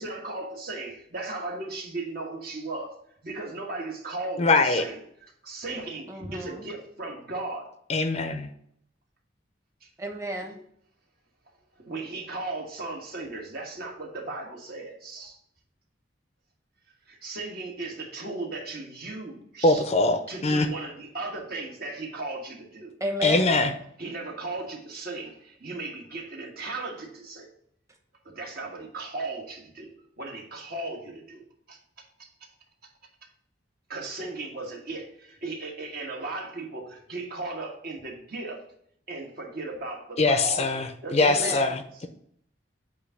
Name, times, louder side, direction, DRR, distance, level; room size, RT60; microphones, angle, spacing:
voice 1, 0.0-3.0 3.2-7.7 11.8-15.4 17.1-19.8 20.3-22.9 24.0-27.5 28.2-31.4 31.7-31.8 33.9-38.6 39.1-42.0, right 2 dB, 55° right, 0 dB, 1.5 m, -36 dB
voice 2, 4.4-4.8 7.9-8.5 19.6-20.7 23.2-23.7 40.2-42.1, left 2 dB, 35° left, 8 dB, 0.6 m, -22 dB
voice 3, 6.1-6.7 10.0-10.6 23.0-23.6 41.2-41.7, right 1 dB, 15° right, 2 dB, 1.0 m, -33 dB
8.3 x 2.8 x 5.6 m, 0.67 s
head